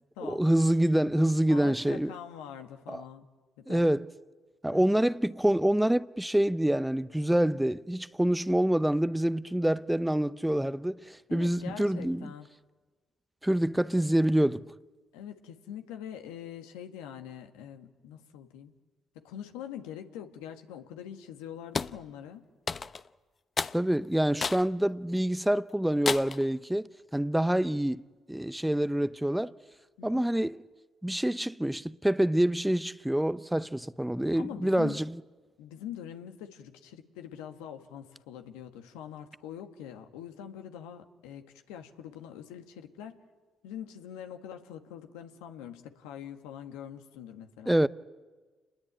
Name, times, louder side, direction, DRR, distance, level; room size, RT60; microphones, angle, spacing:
voice 1, 0.2-2.1 2.9-3.0 3.7-4.1 4.6-12.3 13.4-14.7 23.7-28.0 28.3-29.5 30.0-30.6 31.0-35.1 47.7-47.9, right 1 dB, 5° right, 0.7 m, -26 dB
voice 2, 1.5-3.3 3.6-3.9 4.7-5.0 11.3-12.5 15.1-18.7 19.2-22.5 30.0-30.3 34.4-35.0 35.6-43.2 43.6-47.7, left 9 dB, 85° left, 1.7 m, -44 dB
sound 1, 21.8-22.0 22.7-23.1 23.6-23.8 24.4-24.7 25.2-25.3 26.1-26.4, left 5 dB, 40° left, 0.8 m, -31 dB
28.5 x 21.0 x 8.9 m
hypercardioid pair, 55°, 0 cm